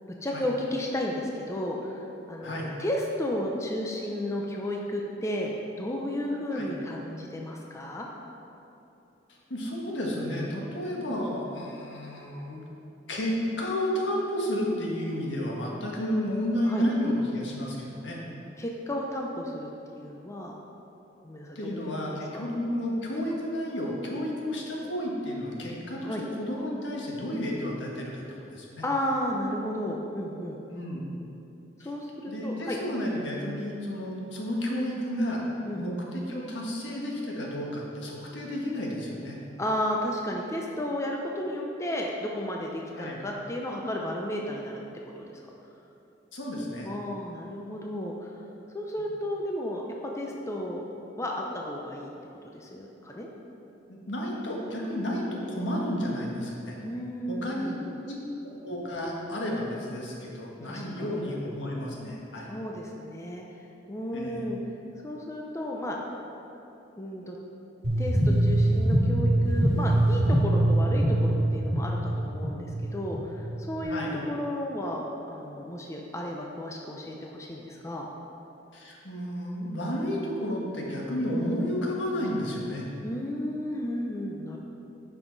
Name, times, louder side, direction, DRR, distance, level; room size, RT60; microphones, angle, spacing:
voice 1, 0.2-2.0 2.3-8.1 16.7-16.9 18.6-20.6 21.2-22.5 26.0-26.2 28.8-30.6 31.8-32.8 35.7-35.8 39.6-44.7 45.2-45.4 46.8-48.3 48.7-49.8 50.1-50.8 51.2-52.1 52.5-53.3 56.8-58.0 60.6-61.1 62.5-63.4 63.9-64.6 65.0-66.0 67.0-67.4 68.0-78.1 83.0-84.6, left 1 dB, 15° left, -1 dB, 0.6 m, -33 dB
voice 2, 9.5-12.6 13.1-18.2 21.5-28.8 30.7-31.1 31.8-31.9 32.3-35.4 35.8-39.4 43.0-43.2 46.3-46.9 53.9-56.8 57.3-57.7 58.0-62.5 64.1-64.5 73.9-74.2 78.7-82.9, equal, 75° left, -2 dB, 1.5 m, -31 dB
sound 1, 67.8-73.8, right 1 dB, 60° right, 2.0 m, -24 dB
10.5 x 5.7 x 4.0 m, 2.8 s
head